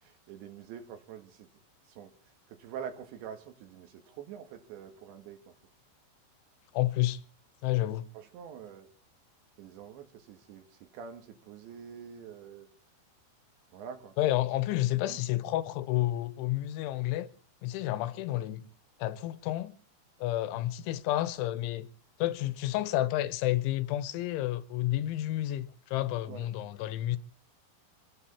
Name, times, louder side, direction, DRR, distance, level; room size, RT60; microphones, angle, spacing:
voice 1, 0.0-1.5 1.9-2.1 2.5-5.5 8.1-8.9 9.6-12.7 13.7-14.2 15.1-15.2 26.3-26.5, right 8 dB, 75° right, 3.8 m, -45 dB
voice 2, 6.7-7.2 7.6-8.1 14.2-17.3 17.6-18.7 19.0-19.8 20.2-21.9 22.2-27.2, left 15 dB, 85° left, 3.3 m, -30 dB
26.0 x 10.5 x 4.3 m
omnidirectional pair, 5.3 m